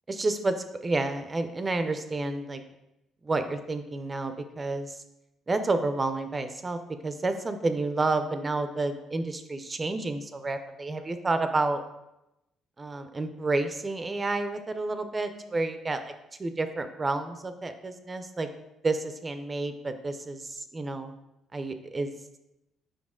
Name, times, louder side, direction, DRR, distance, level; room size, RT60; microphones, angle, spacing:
voice 1, 0.1-0.5 0.8-2.6 3.2-5.0 5.5-11.8 12.8-16.1 16.4-18.5 18.8-21.1 21.5-22.1, right 2 dB, 25° right, 8 dB, 0.5 m, -30 dB
6.3 x 5.1 x 3.7 m, 0.91 s
cardioid pair, 115°, 0 cm